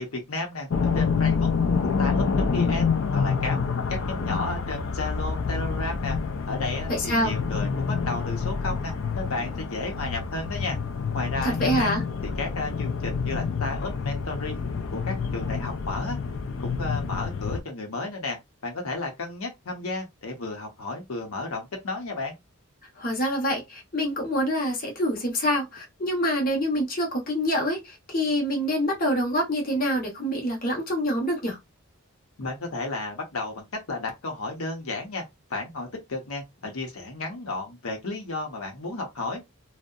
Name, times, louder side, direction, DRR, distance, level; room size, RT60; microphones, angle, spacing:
voice 1, 0.0-1.5 2.0-6.2 6.5-10.8 11.1-11.9 12.2-14.6 14.9-16.2 16.6-18.4 18.6-22.3 32.4-35.2 35.5-39.4, left 2 dB, 80° left, 0.7 m, -33 dB
sound 1, 0.7-17.6, left 5 dB, 60° left, 0.4 m, -27 dB
voice 2, 6.9-7.3 11.4-12.0 23.0-31.6, equal, 40° left, 0.7 m, -26 dB
2.6 x 2.1 x 2.3 m
head